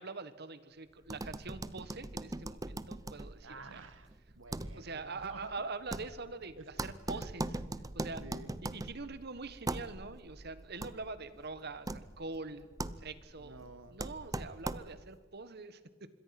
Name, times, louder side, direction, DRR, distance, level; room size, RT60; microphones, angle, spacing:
voice 1, 0.0-3.9 4.7-7.5 7.9-8.2 8.6-12.7 13.0-13.6 13.9-16.1, right 3 dB, 55° right, 13 dB, 1.4 m, -44 dB
sound 1, 1.0-15.2, right 2 dB, 20° right, 0.7 m, -42 dB
voice 2, 3.4-5.5 6.6-6.7 7.1-7.3 8.2-8.5 13.4-14.0, right 3 dB, 75° right, 10 dB, 1.9 m, -51 dB
26.0 x 22.5 x 6.0 m, 1.4 s
head